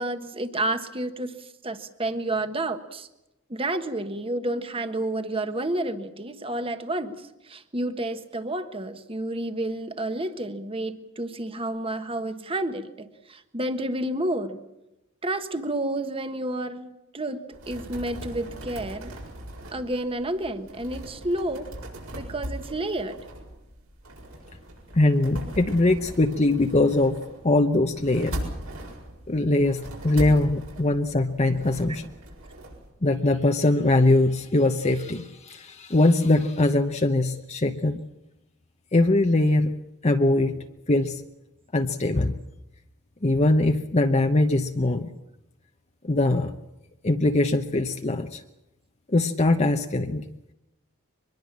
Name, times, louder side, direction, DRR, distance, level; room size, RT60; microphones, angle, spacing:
voice 1, 0.0-3.1 3.5-14.6 15.2-19.2 19.7-21.7 22.1-23.2, right 1 dB, 25° right, 9 dB, 1.4 m, -30 dB
sound 1, 17.5-32.9, right 1 dB, 80° right, 7.4 m, -39 dB
voice 2, 24.9-27.1 27.4-28.3 29.3-32.1 33.0-38.0 38.9-39.7 40.0-40.6 40.9-41.2 41.7-42.3 43.2-45.1 46.0-46.5 47.0-48.4 49.1-50.2, left 2 dB, 30° left, 5 dB, 0.9 m, -22 dB
24.0 x 21.5 x 7.5 m, 0.93 s
head